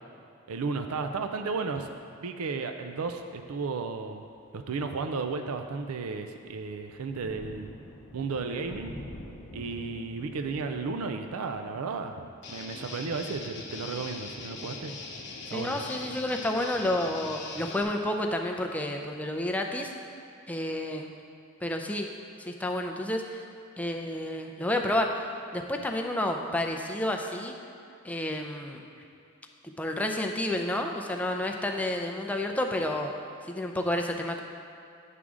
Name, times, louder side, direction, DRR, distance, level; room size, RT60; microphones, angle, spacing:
voice 1, 0.5-4.3 4.5-7.7 8.1-8.9 9.5-14.9 15.5-15.8, right 4 dB, 85° right, 6 dB, 0.4 m, -34 dB
Thunder, 3.4-3.7 4.3-4.4 4.9-15.4, left 1 dB, 30° left, 0.7 m, -48 dB
Guitar, 12.4-17.8, left 3 dB, 55° left, 0.9 m, -41 dB
voice 2, 15.5-19.9 20.5-21.1 21.6-22.1 22.4-23.4 23.8-25.2 25.5-27.5 28.0-28.8 29.6-33.1 33.5-34.4, left 1 dB, 5° left, 2 dB, 0.4 m, -30 dB
8.2 x 3.7 x 6.2 m, 2.6 s
head